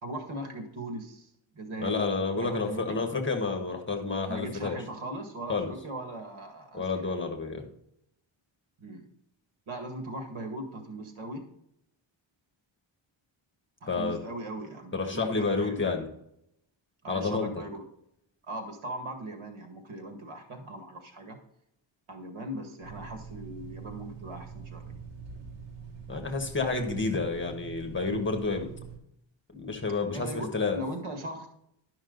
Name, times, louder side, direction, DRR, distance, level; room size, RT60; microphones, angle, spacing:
voice 1, 0.0-2.1 2.4-3.0 4.3-7.1 8.8-9.1 9.7-11.4 13.8-15.8 17.0-17.8 18.4-21.4 22.1-24.9 30.1-31.5, right 1 dB, 85° right, 5 dB, 2.0 m, -39 dB
voice 2, 1.8-4.8 5.5-5.7 6.7-7.6 13.9-14.2 14.9-16.1 17.1-17.5 26.1-28.7 29.5-30.8, left 4 dB, 25° left, 4 dB, 1.4 m, -30 dB
sound 1, 22.8-29.0, right 6 dB, 65° right, 2.2 m, -44 dB
11.5 x 5.9 x 3.9 m, 0.77 s
wide cardioid pair, 150°, 47 cm